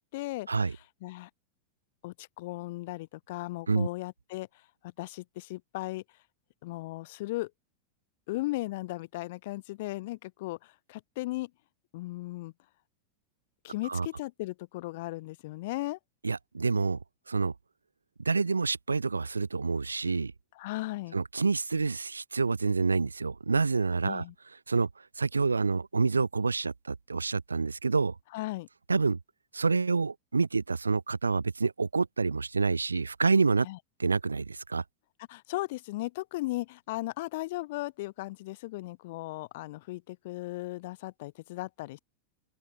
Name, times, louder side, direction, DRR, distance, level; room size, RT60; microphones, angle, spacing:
voice 1, 0.1-1.3 2.0-6.0 6.6-7.5 8.3-11.5 11.9-12.5 13.6-16.0 20.5-21.2 24.0-24.3 28.3-28.7 33.6-33.8 35.3-42.0, left 19 dB, 50° left, 6.6 m, -37 dB
voice 2, 16.2-17.0 17.3-17.5 18.2-20.3 21.1-24.2 24.7-24.9 25.2-28.1 28.9-29.2 29.5-33.7 34.0-34.8, right 4 dB, 80° right, 3.0 m, -27 dB
open air
figure-of-eight pair, 90°, 0 cm